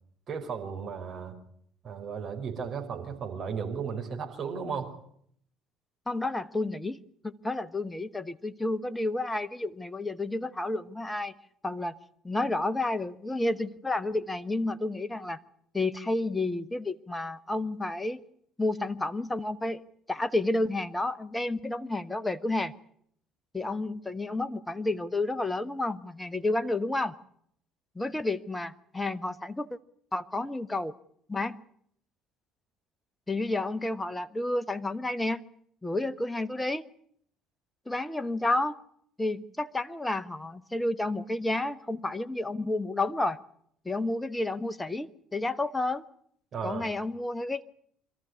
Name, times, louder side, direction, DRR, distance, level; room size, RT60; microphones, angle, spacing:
voice 1, 0.3-1.3 1.8-4.9 46.5-46.8, right 6 dB, 45° right, 2 dB, 5.4 m, -35 dB
voice 2, 6.1-7.0 7.2-11.3 11.6-12.0 12.2-15.4 15.7-18.2 18.6-19.8 20.1-22.7 23.5-27.1 27.9-29.8 30.1-30.9 31.3-31.6 33.3-35.4 35.8-36.8 37.9-38.8 39.2-43.4 43.8-46.0 46.6-47.6, left 2 dB, 10° left, 15 dB, 1.1 m, -30 dB
26.0 x 14.0 x 9.8 m, 0.69 s
figure-of-eight pair, 55°, 0 cm